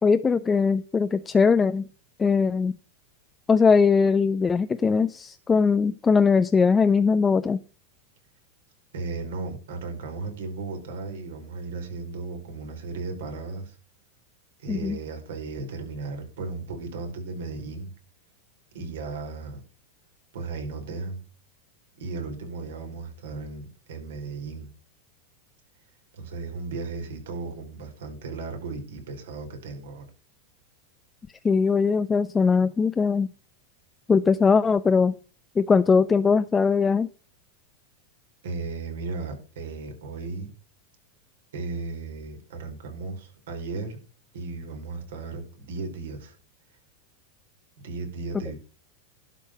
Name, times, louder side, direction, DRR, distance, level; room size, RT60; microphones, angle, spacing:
voice 1, 0.0-1.8 2.2-2.8 3.5-7.6 14.7-15.0 31.4-33.3 34.1-35.1 35.6-37.1, left 5 dB, 20° left, 0.6 m, -20 dB
voice 2, 8.9-13.8 14.6-17.9 18.7-19.6 20.3-21.2 22.0-24.7 26.1-30.1 38.4-40.5 41.5-44.0 44.3-46.4 47.8-48.5, right 3 dB, 80° right, 4.7 m, -35 dB
11.5 x 5.4 x 7.7 m
hypercardioid pair, 115°, 0 cm